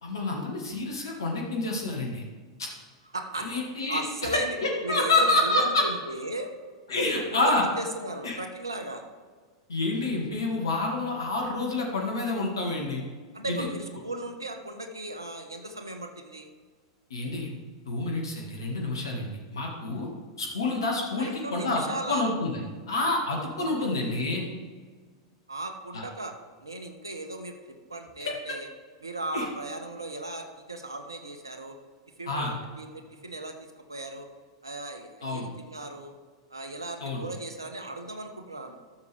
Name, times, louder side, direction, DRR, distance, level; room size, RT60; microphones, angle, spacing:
voice 1, 0.0-2.2 2.6-2.7 3.4-5.8 6.9-7.6 8.2-8.4 9.7-13.0 13.5-13.7 17.1-17.5 17.9-20.1 20.4-21.8 22.1-24.4 25.9-26.0 28.2-28.3 29.3-29.5 32.3-32.5 35.2-35.5 37.0-37.2, left 2 dB, 70° left, -1 dB, 1.7 m, -28 dB
voice 2, 3.1-3.6 3.9-4.6 4.8-6.5 7.0-9.0 13.3-16.5 21.2-22.3 23.6-23.9 25.5-28.7 29.0-31.8 32.2-34.3 34.6-36.1 36.5-38.7, right 2 dB, 85° right, 6 dB, 1.0 m, -37 dB
13.5 x 6.9 x 3.4 m, 1.6 s
figure-of-eight pair, 90°, 2 cm